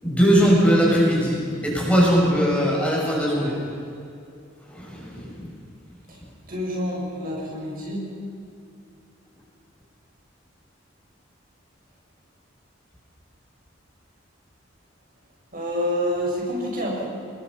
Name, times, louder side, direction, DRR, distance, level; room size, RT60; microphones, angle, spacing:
voice 1, 0.0-1.4 1.6-3.5 4.7-5.4, equal, 5° left, -4 dB, 7.7 m, -19 dB
voice 2, 6.5-8.0 15.5-17.1, equal, 50° right, -2 dB, 6.3 m, -27 dB
28.5 x 21.5 x 5.9 m, 2.6 s
head